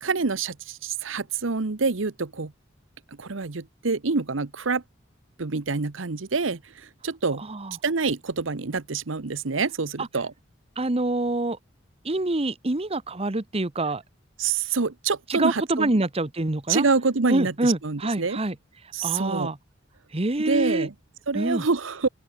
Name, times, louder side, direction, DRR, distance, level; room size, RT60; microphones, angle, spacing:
voice 1, 0.0-2.5 3.2-4.8 5.4-7.4 7.8-10.3 14.4-16.0 16.7-18.4 18.9-19.5 20.4-20.9 21.3-22.1, right 4 dB, 90° right, 1.0 m, -26 dB
voice 2, 10.8-11.6 12.0-14.0 15.3-16.9 17.3-18.5 19.0-19.6 20.1-20.9 21.3-21.6, right 2 dB, 30° right, 1.2 m, -26 dB
open air
head